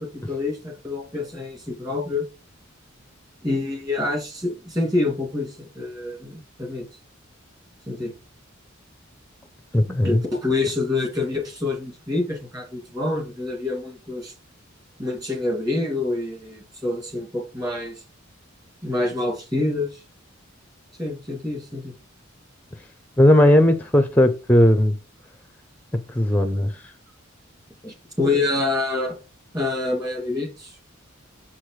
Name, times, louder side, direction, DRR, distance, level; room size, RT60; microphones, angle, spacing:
voice 1, 0.0-2.3 3.4-6.8 7.9-8.1 9.9-14.3 15.0-18.0 18.8-20.0 21.0-21.9 28.2-29.2 29.5-30.8, left 2 dB, 20° right, 2.3 m, -26 dB
voice 2, 9.7-10.2 23.2-24.9 26.1-26.7 27.8-27.9, left 1 dB, 10° left, 0.5 m, -17 dB
6.3 x 6.1 x 3.2 m
head